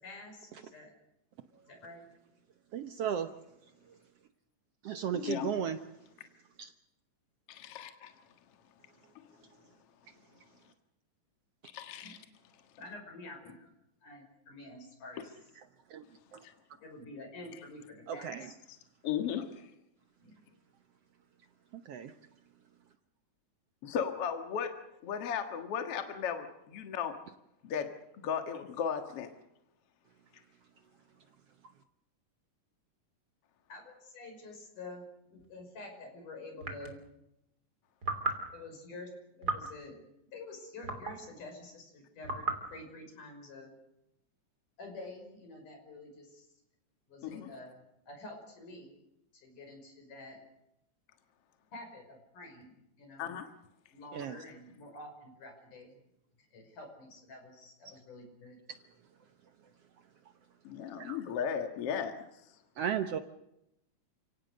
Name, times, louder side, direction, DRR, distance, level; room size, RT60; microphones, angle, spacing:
voice 1, 0.0-0.9 1.7-2.0 12.0-12.1 12.8-13.7 14.0-15.3 16.8-18.5 20.2-20.4 33.7-37.0 38.5-40.0 40.3-43.7 44.8-46.5 47.1-48.9 49.3-50.4 51.7-53.3 53.9-56.0 56.5-58.6, left 2 dB, 75° left, 4 dB, 7.3 m, -48 dB
voice 2, 2.7-3.3 4.8-5.8 6.6-6.7 15.9-16.0 16.3-16.4 18.1-18.5 21.9-22.1 54.1-54.4 61.0-61.2 62.8-63.2, right 8 dB, 65° right, 9 dB, 1.6 m, -34 dB
voice 3, 5.1-5.5 7.5-8.1 9.2-9.3 11.7-12.3 16.4-16.5 19.0-19.7 23.8-27.1 27.6-29.3 47.2-47.5 53.2-53.5 60.6-62.2, left 7 dB, 50° left, 6 dB, 2.4 m, -36 dB
sound 1, 35.4-35.5 36.6-37.0 38.0-38.5 39.4-39.8 40.8-41.2 42.2-42.7, right 3 dB, 30° right, 3.4 m, -35 dB
30.0 x 17.5 x 6.6 m, 0.84 s
omnidirectional pair, 3.7 m